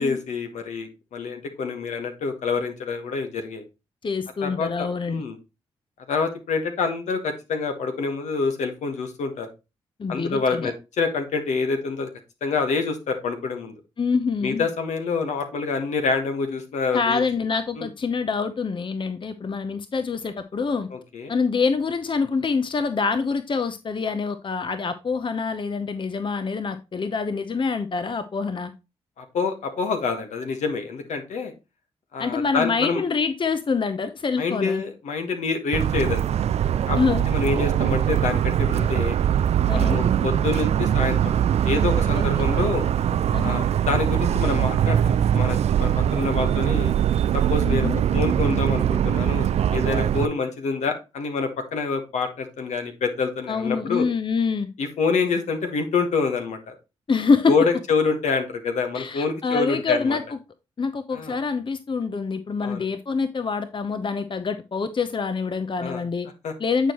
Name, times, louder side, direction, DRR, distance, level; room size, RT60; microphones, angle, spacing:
voice 1, 0.0-3.6 4.4-5.4 6.1-9.5 10.1-12.1 12.4-13.7 14.4-17.2 17.8-17.9 20.9-21.3 29.2-31.5 32.1-33.0 34.4-36.3 36.9-37.0 37.3-39.2 39.7-41.3 41.6-42.8 43.4-46.9 47.3-54.0 54.8-56.8 57.5-60.2 61.1-61.4 62.6-62.8 65.8-66.0 66.4-66.5, left 4 dB, 75° left, 1.4 m, -27 dB
voice 2, 4.0-5.2 10.0-10.7 14.0-14.7 16.9-20.9 21.3-28.7 32.2-34.8 37.0-37.3 39.7-40.0 42.4-42.5 43.3-43.6 47.6-48.0 53.5-54.7 57.1-57.6 58.9-60.4 60.8-66.3 66.6-66.9, left 5 dB, 45° left, 0.8 m, -25 dB
Motor vehicle (road) / Siren, 35.7-50.3, right 10 dB, 60° right, 0.4 m, -22 dB
9.0 x 4.6 x 3.0 m
supercardioid pair, 40°, 12 cm